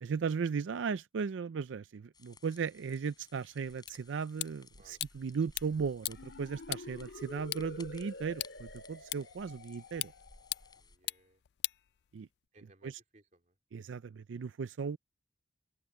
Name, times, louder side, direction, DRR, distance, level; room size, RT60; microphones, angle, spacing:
voice 1, 0.0-10.1 12.1-12.3 12.8-13.0 13.7-15.0, right 6 dB, 90° right, 0.4 m, -36 dB
sound 1, 2.1-11.0, left 3 dB, 20° left, 5.5 m, -58 dB
sound 2, 3.9-12.5, left 18 dB, 60° left, 0.3 m, -43 dB
sound 3, 6.0-10.8, left 2 dB, 85° left, 2.1 m, -49 dB
voice 2, 10.8-11.4 12.5-13.6, right 2 dB, 40° right, 3.1 m, -63 dB
open air
head